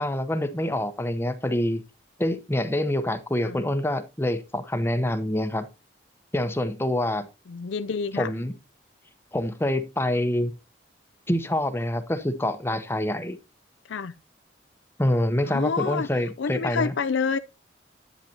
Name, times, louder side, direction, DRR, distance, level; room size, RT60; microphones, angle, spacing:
voice 1, 0.0-1.8 2.2-5.7 6.3-7.3 8.1-8.5 9.3-10.5 11.3-13.4 15.0-16.9, left 1 dB, 15° left, 0.8 m, -26 dB
voice 2, 7.5-8.3 13.9-14.1 15.5-16.1 16.4-17.4, left 5 dB, 80° left, 0.5 m, -28 dB
10.5 x 9.1 x 2.8 m
head